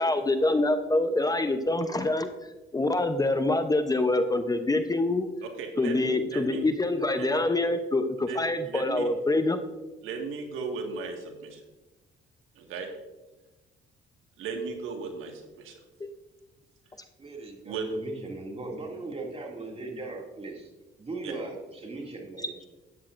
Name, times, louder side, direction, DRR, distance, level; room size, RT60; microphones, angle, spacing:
voice 1, 0.0-2.3 2.7-5.3 5.8-9.6, left 2 dB, 20° left, 8 dB, 0.7 m, -25 dB
voice 2, 5.6-6.6 7.2-7.4 8.3-8.4 8.7-9.1 10.0-11.6 12.6-12.9 14.4-15.8 17.6-17.9 21.2-21.3, right 4 dB, 90° right, 2 dB, 1.7 m, -36 dB
voice 3, 17.2-20.7 21.0-22.6, right 3 dB, 30° right, 0 dB, 2.4 m, -38 dB
13.0 x 9.9 x 2.5 m, 1.1 s
cardioid pair, 90°, 20 cm